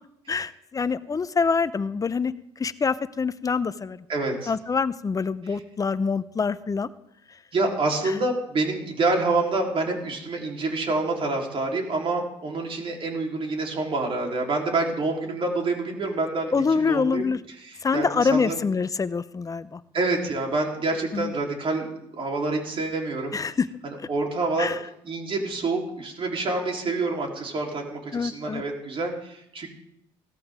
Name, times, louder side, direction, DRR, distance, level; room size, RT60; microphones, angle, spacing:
voice 1, 0.3-2.3 2.6-4.0 4.5-6.9 16.5-17.4 17.8-19.8 21.1-21.3 23.3-23.7 24.6-24.8 28.1-28.6, left 5 dB, 25° left, 16 dB, 0.7 m, -25 dB
voice 2, 4.1-4.5 7.5-17.3 17.6-18.5 19.9-21.9 22.1-23.4 24.1-24.7 25.0-29.7, right 3 dB, 45° right, 1 dB, 4.0 m, -27 dB
16.5 x 14.0 x 3.8 m, 0.75 s
hypercardioid pair, 70°, 13 cm